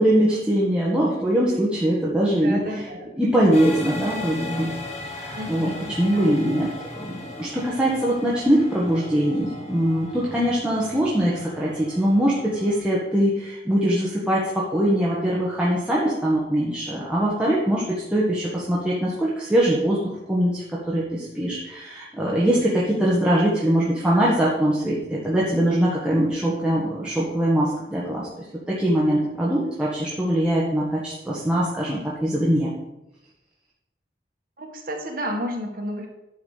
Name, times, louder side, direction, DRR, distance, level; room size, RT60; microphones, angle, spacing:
voice 1, 0.0-2.6 3.2-4.7 5.0-5.7 6.0-6.7 7.0-28.3 28.7-32.7, right 1 dB, 5° right, -7 dB, 1.6 m, -22 dB
voice 2, 2.4-3.1 5.3-6.4 34.6-36.1, equal, 50° right, 1 dB, 1.9 m, -31 dB
sound 1, 3.5-12.8, left 2 dB, 40° left, 1.8 m, -37 dB
10.5 x 4.9 x 6.6 m, 0.92 s
head